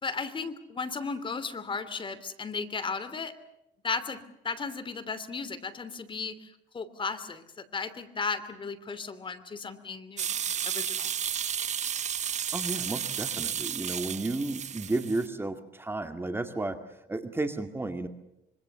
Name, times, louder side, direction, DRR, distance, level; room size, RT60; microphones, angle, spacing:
voice 1, 0.0-3.3 3.8-6.5 6.7-11.1, left 4 dB, 30° left, 12 dB, 3.0 m, -35 dB
sound 1, 10.2-15.3, right 8 dB, 45° right, 1.2 m, -32 dB
voice 2, 12.5-18.1, right 2 dB, 15° right, 7 dB, 2.1 m, -33 dB
26.0 x 25.0 x 7.0 m, 0.88 s
cardioid pair, 110°, 17 cm